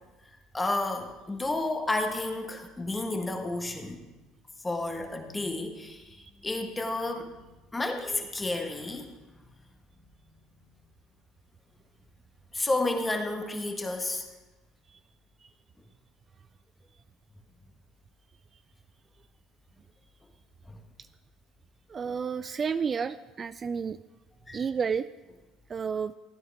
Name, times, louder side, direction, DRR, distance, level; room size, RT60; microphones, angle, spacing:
voice 1, 0.5-4.0 4.6-9.4 9.9-10.0 12.5-14.2 20.7-20.8 24.5-24.6, left 2 dB, 15° left, 4 dB, 1.5 m, -31 dB
voice 2, 21.9-24.0 24.5-25.1 25.7-26.1, right 6 dB, 35° right, 14 dB, 0.3 m, -30 dB
15.0 x 9.4 x 3.5 m, 1.1 s
hypercardioid pair, 75°, 0 cm